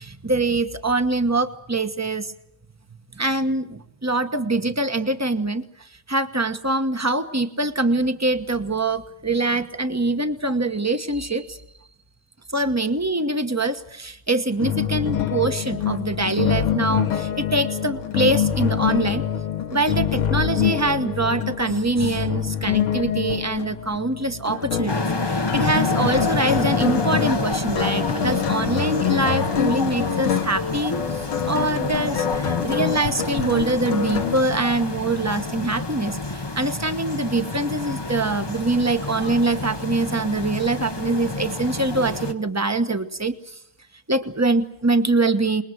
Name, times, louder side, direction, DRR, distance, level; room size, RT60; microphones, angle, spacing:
voice 1, 0.0-2.3 3.1-11.6 12.5-19.2 19.7-43.6 44.1-45.6, right 2 dB, 10° right, 9 dB, 0.7 m, -24 dB
sound 1, 14.6-34.4, left 9 dB, 80° left, 2.2 m, -25 dB
sound 2, 24.9-42.3, left 3 dB, 30° left, 0.4 m, -28 dB
27.5 x 21.0 x 7.9 m, 0.75 s
omnidirectional pair, 2.3 m